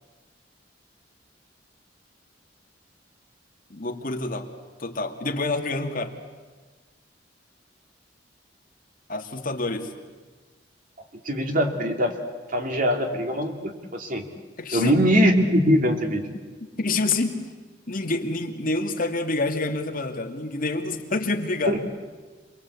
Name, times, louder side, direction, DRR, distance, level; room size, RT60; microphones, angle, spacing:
voice 1, 3.7-4.5 4.8-6.1 9.1-9.9 14.6-15.0 16.3-16.4 16.8-17.4 17.9-21.7, left 2 dB, 50° left, 3 dB, 2.3 m, -27 dB
voice 2, 11.2-12.2 12.5-14.2 14.7-16.2 21.7-21.8, equal, 50° right, 4 dB, 2.8 m, -22 dB
27.5 x 21.5 x 8.5 m, 1.4 s
head